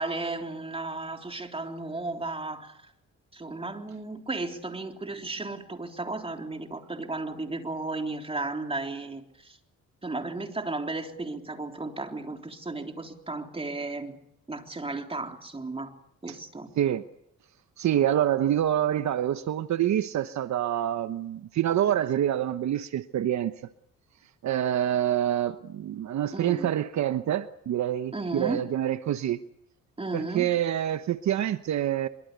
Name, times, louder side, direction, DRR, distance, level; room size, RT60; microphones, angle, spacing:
voice 1, 0.0-2.8 3.3-9.6 10.0-14.2 14.5-15.9 16.2-16.7 26.3-26.7 28.1-28.6 30.0-30.5, right 2 dB, 20° right, 3.6 m, -34 dB
voice 2, 17.8-23.5 24.4-29.4 30.1-32.1, right 11 dB, 65° right, 1.1 m, -26 dB
25.0 x 23.5 x 8.2 m
cardioid pair, 90°, 30 cm